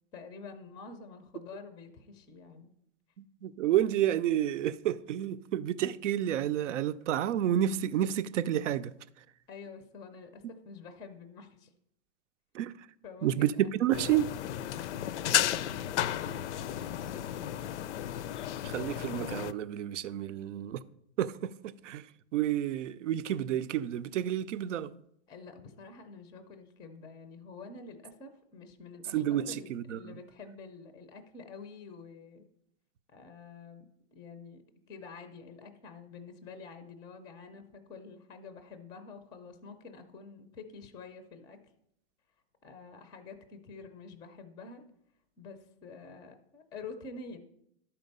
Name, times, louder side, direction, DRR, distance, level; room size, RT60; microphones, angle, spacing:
voice 1, 0.1-2.7 9.5-11.7 13.0-13.7 14.4-17.9 25.3-32.5 33.1-33.9 34.1-34.6 34.9-41.6 42.6-44.8 45.4-47.4, left 4 dB, 10° left, 0.4 m, -48 dB
voice 2, 3.4-8.9 12.5-12.7 13.2-14.2 18.6-20.8 21.2-22.0 22.3-24.9 29.1-30.1, right 11 dB, 85° right, 0.6 m, -30 dB
sound 1, 13.9-19.5, left 11 dB, 75° left, 0.5 m, -33 dB
11.0 x 4.4 x 5.3 m
hypercardioid pair, 145°, 35 cm